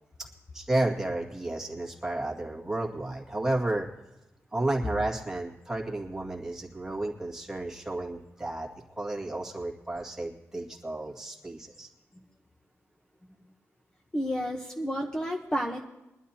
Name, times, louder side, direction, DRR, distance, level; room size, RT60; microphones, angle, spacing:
voice 1, 0.5-3.9 4.5-8.7 9.0-11.9, right 2 dB, 10° right, -2 dB, 2.1 m, -32 dB
voice 2, 14.1-15.8, equal, 15° left, 1 dB, 1.1 m, -30 dB
22.5 x 12.0 x 2.9 m, 0.96 s
wide cardioid pair, 150°, 5 cm